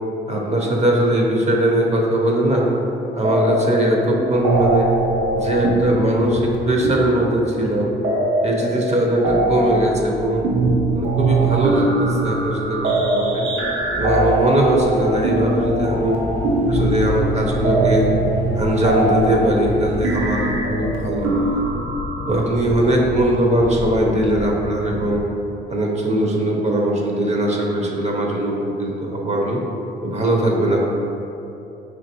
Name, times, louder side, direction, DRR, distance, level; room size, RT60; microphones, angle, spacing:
voice 1, 0.3-2.7 3.1-4.9 5.3-7.9 8.4-10.5 10.9-13.5 14.0-16.2 16.7-18.1 18.5-21.6 22.3-25.2 25.7-29.6 30.0-30.8, right 1 dB, 35° right, -1 dB, 0.7 m, -20 dB
sound 1, 3.2-3.9 4.1-22.4, right 2 dB, 80° right, 0.6 m, -22 dB
sound 2, 13.6-20.5, left 2 dB, 15° left, 0.5 m, -29 dB
sound 3, 16.3-25.2, left 3 dB, 85° left, 0.4 m, -32 dB
5.0 x 2.9 x 2.9 m, 2.9 s
cardioid pair, 90°, 20 cm